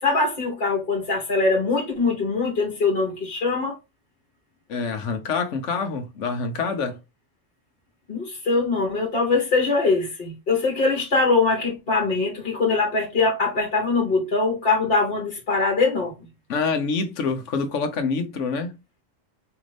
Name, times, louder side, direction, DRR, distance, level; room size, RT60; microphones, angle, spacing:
voice 1, 0.0-3.8 8.1-16.1, left 3 dB, 50° left, 1.3 m, -22 dB
voice 2, 4.7-7.0 16.5-18.8, left 4 dB, 70° left, 1.1 m, -26 dB
5.0 x 2.6 x 3.2 m
omnidirectional pair, 1.3 m